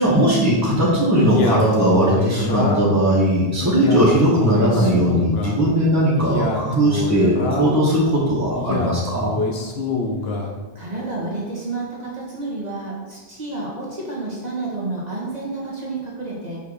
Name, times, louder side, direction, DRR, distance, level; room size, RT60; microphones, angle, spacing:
voice 1, 0.0-9.3, right 1 dB, 15° right, -6 dB, 1.6 m, -18 dB
Male speech man speaking, 1.2-3.0 3.6-5.6 6.1-7.8 8.5-10.5, left 2 dB, 70° left, 1.2 m, -25 dB
voice 2, 10.7-16.6, right 2 dB, 40° right, -5 dB, 1.8 m, -30 dB
5.5 x 4.7 x 6.3 m, 1.3 s
omnidirectional pair, 1.1 m